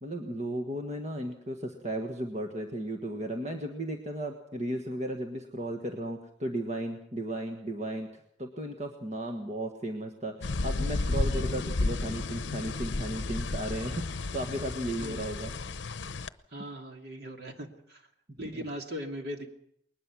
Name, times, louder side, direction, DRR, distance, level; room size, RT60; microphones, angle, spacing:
voice 1, 0.0-8.1 8.4-15.6 18.4-18.6, right 1 dB, 35° right, 3 dB, 1.6 m, -35 dB
sound 1, 10.4-16.3, left 2 dB, 70° left, 0.8 m, -32 dB
voice 2, 15.0-15.3 16.5-18.0 18.4-19.5, equal, 55° right, 3 dB, 2.8 m, -39 dB
21.0 x 20.0 x 6.2 m, 0.71 s
head